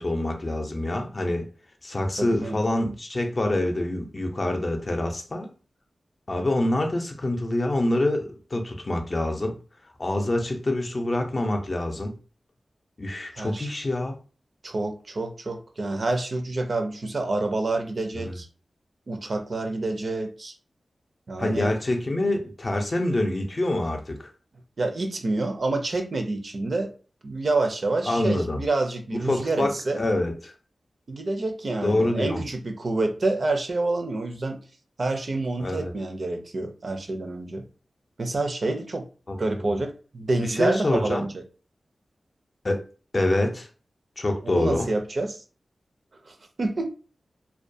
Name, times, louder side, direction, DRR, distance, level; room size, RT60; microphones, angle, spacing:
voice 1, 0.0-1.5 1.8-5.5 6.3-9.6 10.0-12.2 13.0-14.2 18.1-18.4 21.4-24.3 28.1-28.6 29.1-30.5 31.8-32.4 35.6-35.9 39.3-39.6 40.4-41.3 42.6-42.8 43.1-43.7 44.2-44.9, left 1 dB, 40° left, 0.5 m, -26 dB
voice 2, 2.2-2.6 13.4-13.7 14.6-18.5 19.1-20.5 21.3-21.7 24.8-26.9 27.2-30.0 31.1-34.6 35.0-37.6 38.2-39.1 39.4-41.4 44.4-45.4 46.3-47.0, right 2 dB, 55° right, 0.4 m, -28 dB
2.2 x 2.2 x 2.6 m
wide cardioid pair, 80°, 0 cm